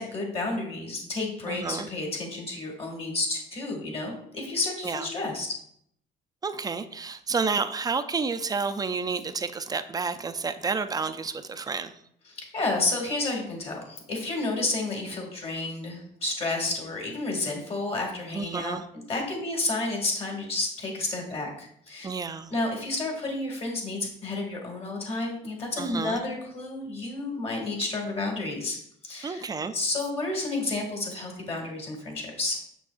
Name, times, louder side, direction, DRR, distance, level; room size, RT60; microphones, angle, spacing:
voice 1, 0.0-5.5 12.3-18.8 19.1-22.1 22.5-28.8 29.0-29.5 29.7-32.6, left 2 dB, 35° left, 0 dB, 2.2 m, -31 dB
voice 2, 1.5-1.9 4.8-5.1 6.4-11.9 18.3-18.8 22.0-22.5 25.8-26.2 29.2-29.7, right 4 dB, 20° right, 10 dB, 0.4 m, -30 dB
7.1 x 6.0 x 2.5 m, 0.68 s
cardioid pair, 110°, 17 cm